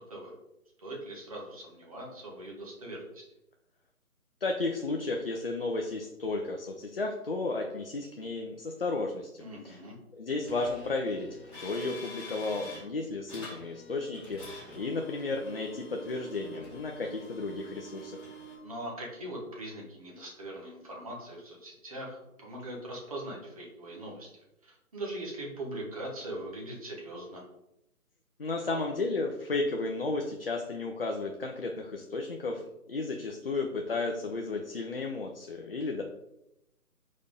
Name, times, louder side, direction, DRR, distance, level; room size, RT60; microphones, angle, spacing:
voice 1, 0.8-3.2 9.4-9.9 18.6-27.4, right 1 dB, 25° right, -2 dB, 1.2 m, -41 dB
voice 2, 4.4-9.3 9.6-9.8 10.1-11.3 11.6-18.2 28.4-32.6 32.9-36.0, left 3 dB, 40° left, 2 dB, 0.6 m, -33 dB
sound 1, 10.5-12.8 13.3-18.6, equal, 5° right, 2.0 m, -46 dB
5.0 x 4.2 x 5.2 m, 0.86 s
figure-of-eight pair, 160°, 44 cm